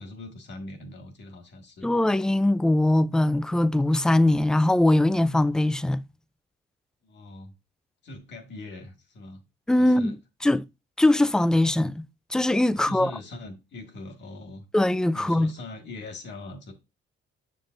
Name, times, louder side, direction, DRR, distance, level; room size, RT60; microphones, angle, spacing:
voice 1, 0.0-1.9 7.0-7.5 8.0-9.4 9.8-10.2 12.7-14.7 15.1-16.7, left 2 dB, 65° left, 1.9 m, -41 dB
voice 2, 1.8-6.0 9.7-10.2 10.4-10.6 11.0-12.0 12.3-13.1 14.7-15.5, left 1 dB, 5° left, 0.3 m, -21 dB
7.2 x 6.6 x 2.5 m
cardioid pair, 90°, 20 cm